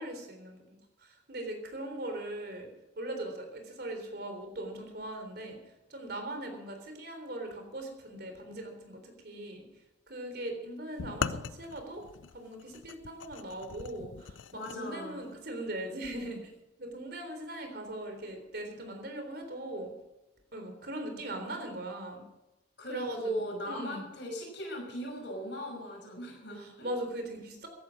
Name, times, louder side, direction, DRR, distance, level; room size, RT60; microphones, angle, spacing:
voice 1, 0.0-2.7 3.0-9.7 10.1-12.0 12.3-14.4 14.7-16.5 16.8-19.9 20.5-22.2 22.9-24.0 26.5-27.7, right 1 dB, 55° right, 4 dB, 3.7 m, -40 dB
sound 1, 11.0-14.8, left 6 dB, 80° left, 0.5 m, -39 dB
voice 2, 14.5-15.2 22.8-26.9, equal, 65° left, 1 dB, 5.8 m, -38 dB
15.0 x 11.5 x 6.3 m, 0.97 s
head